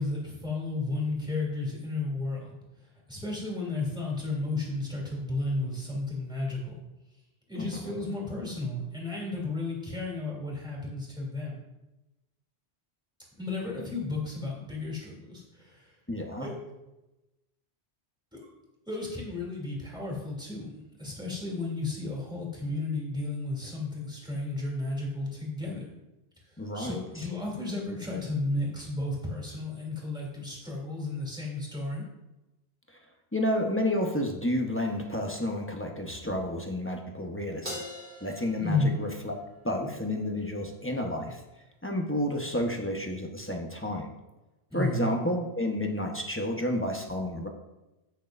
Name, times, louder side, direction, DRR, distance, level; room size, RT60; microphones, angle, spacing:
voice 1, 0.0-2.5 3.1-6.7 7.5-11.6 13.4-15.9 16.4-16.6 18.3-18.5 18.9-25.8 26.4-32.1 38.6-39.0 44.7-45.1, left 2 dB, 5° right, -4 dB, 3.0 m, -33 dB
voice 2, 16.1-16.5 26.6-27.3 33.3-37.8 38.2-39.3 39.6-41.4 41.8-44.1 44.7-47.5, left 1 dB, 10° left, 1 dB, 1.1 m, -30 dB
Crash cymbal, 37.6-40.2, left 1 dB, 45° right, 3.9 m, -43 dB
15.5 x 6.5 x 2.6 m, 1.0 s
omnidirectional pair, 1.1 m